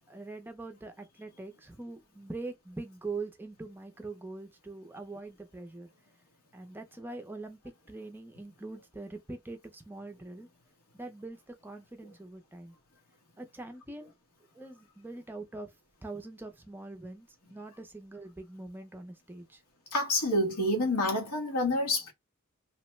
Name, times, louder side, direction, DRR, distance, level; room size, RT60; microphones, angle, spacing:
voice 1, 0.1-5.9 6.5-7.6 7.9-10.5 10.9-12.7 13.4-14.1 14.6-15.7 16.0-19.6, right 3 dB, 10° right, 0.4 m, -43 dB
voice 2, 19.9-22.1, left 1 dB, 90° left, 1.2 m, -28 dB
2.9 x 2.1 x 3.1 m
head